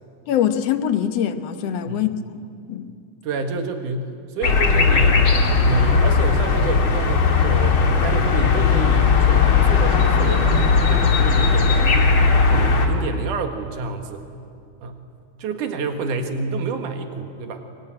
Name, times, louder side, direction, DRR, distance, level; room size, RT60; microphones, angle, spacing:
voice 1, 0.3-2.9, left 9 dB, 65° left, 1.9 m, -24 dB
voice 2, 3.2-5.2 5.6-12.1 12.5-14.2 14.8-15.0 15.4-17.8, right 3 dB, 90° right, 3.2 m, -28 dB
sound 1, 4.4-12.9, left 5 dB, 45° left, 2.7 m, -17 dB
24.0 x 22.5 x 9.9 m
omnidirectional pair, 3.5 m